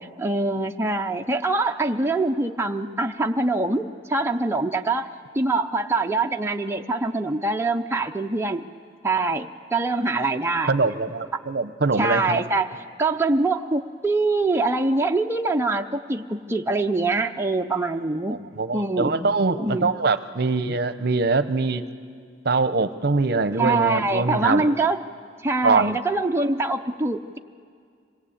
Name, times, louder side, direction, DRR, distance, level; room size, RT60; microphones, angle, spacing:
voice 1, 0.2-5.1 5.3-8.6 9.0-10.8 12.0-12.7 13.0-18.4 18.7-19.3 19.6-19.9 23.6-25.0 25.4-27.4, right 3 dB, 15° right, 3 dB, 0.6 m, -24 dB
voice 2, 10.7-12.4 18.3-21.8 22.4-24.7 25.6-26.0, right 3 dB, 60° right, 12 dB, 0.8 m, -23 dB
25.5 x 18.5 x 8.6 m, 2.1 s
head